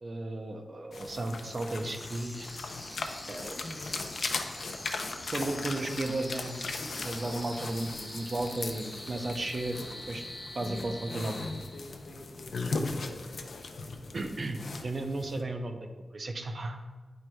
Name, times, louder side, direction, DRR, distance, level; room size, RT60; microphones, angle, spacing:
voice 1, 0.0-2.5 3.3-3.6 5.3-6.6 7.0-10.2 10.5-11.4 14.1-15.8 16.1-16.8, right 2 dB, 40° right, 5 dB, 0.5 m, -34 dB
sound 1, 0.9-15.4, left 3 dB, 55° left, 0.5 m, -38 dB
sound 2, 1.9-12.1, left 1 dB, 10° left, 0.7 m, -45 dB
voice 2, 3.6-4.0 4.5-4.8 10.6-14.3, left 1 dB, 75° left, -2 dB, 1.3 m, -46 dB
9.7 x 4.5 x 2.2 m, 1.3 s
wide cardioid pair, 180°, 0 cm